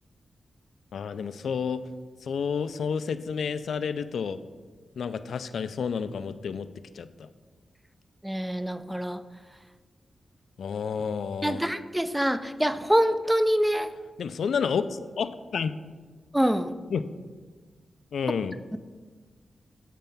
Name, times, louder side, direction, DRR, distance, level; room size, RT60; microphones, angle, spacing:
voice 1, 0.9-1.9 2.2-4.4 5.0-6.7 6.9-7.3 10.6-11.6 14.2-15.7 16.9-17.0 18.1-18.6, left 6 dB, 80° left, 12 dB, 0.3 m, -30 dB
voice 2, 8.2-9.2 11.4-13.9 16.3-16.7, equal, 5° right, 11 dB, 0.3 m, -25 dB
7.5 x 4.5 x 5.3 m, 1.4 s
wide cardioid pair, 140°, 0 cm